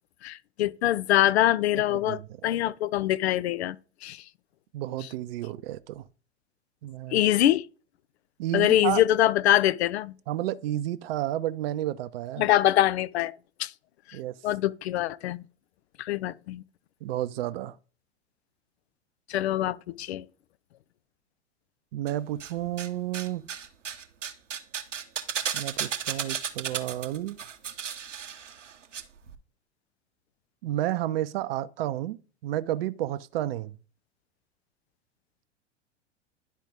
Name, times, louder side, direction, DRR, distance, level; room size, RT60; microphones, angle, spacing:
voice 1, 0.2-3.8 4.0-4.2 5.0-5.1 7.1-7.7 8.5-10.1 12.4-13.3 13.6-13.7 14.1-14.2 14.4-15.4 16.0-16.6 19.3-20.2, left 13 dB, 60° left, 0.5 m, -24 dB
voice 2, 1.9-2.7 4.7-6.0 6.8-7.2 8.4-9.0 10.3-12.5 14.1-14.3 17.0-17.8 21.9-23.4 25.5-27.4 30.6-33.8, right 14 dB, 55° right, 0.6 m, -31 dB
sound 1, 22.1-22.9 23.1-29.0 29.3-29.4, right 8 dB, 80° right, 0.8 m, -34 dB
10.5 x 4.5 x 3.5 m
figure-of-eight pair, 90°, 36 cm